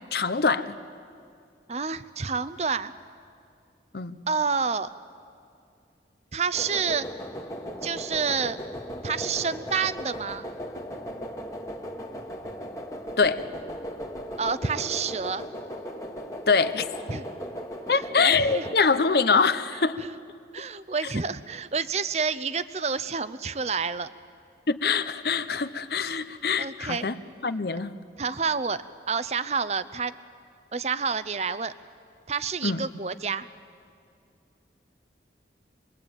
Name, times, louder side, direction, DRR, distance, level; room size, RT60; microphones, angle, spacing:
voice 1, 0.1-0.8 3.9-4.2 13.2-13.4 16.5-16.9 17.9-20.0 24.7-28.0 32.6-32.8, left 5 dB, 60° left, 12 dB, 0.8 m, -24 dB
voice 2, 1.7-2.9 4.3-4.9 6.3-7.1 7.8-8.6 9.0-10.5 14.4-15.5 17.1-17.2 17.9-18.7 20.0-20.1 20.5-24.1 26.6-27.1 28.2-30.1 30.7-31.7 32.3-33.5, right 5 dB, 35° right, 14 dB, 0.6 m, -29 dB
sound 1, 6.5-18.7, equal, 20° left, 1.5 m, -37 dB
26.0 x 22.0 x 8.8 m, 2.4 s
head